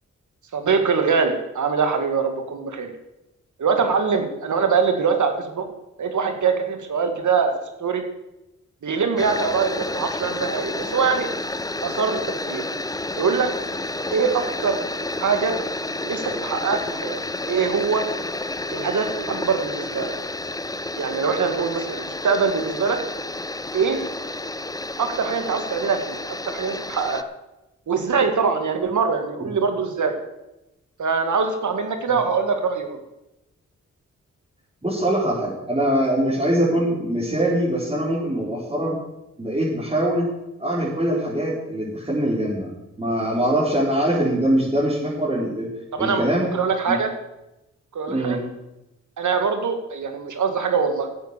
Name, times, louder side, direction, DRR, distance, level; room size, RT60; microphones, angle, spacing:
voice 1, 0.5-2.9 3.6-5.7 6.0-7.5 7.8-8.0 8.8-11.3 11.8-12.2 12.5-12.6 13.2-13.5 14.1-14.8 15.2-15.5 16.0-17.2 17.5-18.0 18.7-20.1 21.0-23.0 23.7-24.0 25.0-27.3 27.9-30.1 31.0-33.0 45.9-46.2 46.5-47.1 47.9-48.4 49.2-51.1, right 5 dB, 75° right, 6 dB, 2.1 m, -23 dB
sound 1, 9.2-27.2, left 2 dB, 10° left, 0.7 m, -30 dB
voice 2, 34.8-38.9 39.4-40.2 40.6-42.7 43.0-45.7 46.0-46.5 46.9-47.0 48.1-48.4, right 1 dB, 20° right, -7 dB, 4.3 m, -23 dB
12.5 x 8.1 x 6.9 m, 0.93 s
cardioid pair, 55°, 30 cm